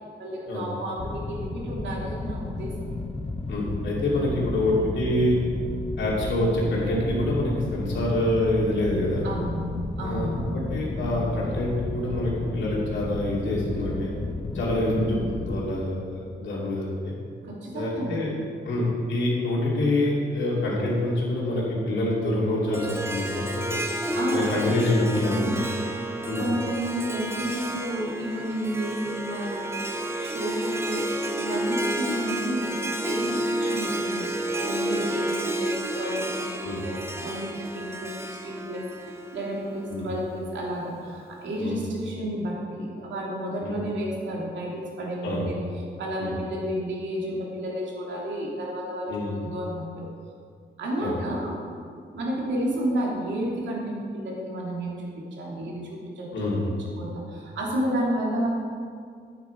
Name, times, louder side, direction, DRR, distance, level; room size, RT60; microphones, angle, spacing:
voice 1, 0.2-2.7 4.6-4.8 9.2-10.5 14.8-15.2 17.4-18.3 24.1-25.7 26.4-32.7 33.0-34.3 34.6-36.9 37.2-45.5 46.0-50.1 50.8-51.5 52.1-55.1 55.4-56.3 57.0-58.5, right 1 dB, 80° right, -4 dB, 2.9 m, -31 dB
sound 1, 1.0-15.6, left 2 dB, 30° left, 0.9 m, -33 dB
voice 2, 3.5-5.4 6.0-9.3 10.0-14.1 14.5-15.2 15.4-17.1 17.7-18.3 18.6-23.8 24.3-25.5 26.2-26.4 36.6-36.8 39.9-40.1 41.6-41.8 43.6-43.7 45.2-45.5 46.2-46.4 49.1-49.3 51.0-51.2 56.3-56.6, left 1 dB, 90° left, -5 dB, 2.7 m, -26 dB
Harp, 22.7-40.0, right 1 dB, 15° right, 0.9 m, -31 dB
12.0 x 8.8 x 4.7 m, 2.2 s
cardioid pair, 105°, 19 cm